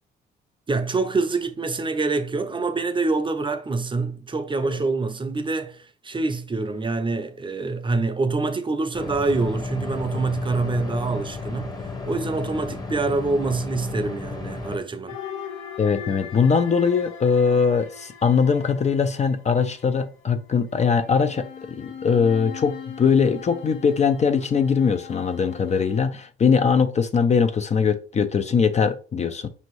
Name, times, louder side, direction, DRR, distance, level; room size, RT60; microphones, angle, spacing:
voice 1, 0.7-11.8 12.1-15.2, right 3 dB, 25° right, 0.5 m, -26 dB
sound 1, 8.9-14.8, left 4 dB, 20° left, 0.9 m, -33 dB
sound 2, 15.1-19.8 20.7-26.0, left 7 dB, 75° left, 1.0 m, -40 dB
voice 2, 15.8-29.5, left 6 dB, 35° left, 0.4 m, -21 dB
5.2 x 2.8 x 3.1 m
cardioid pair, 90°, 20 cm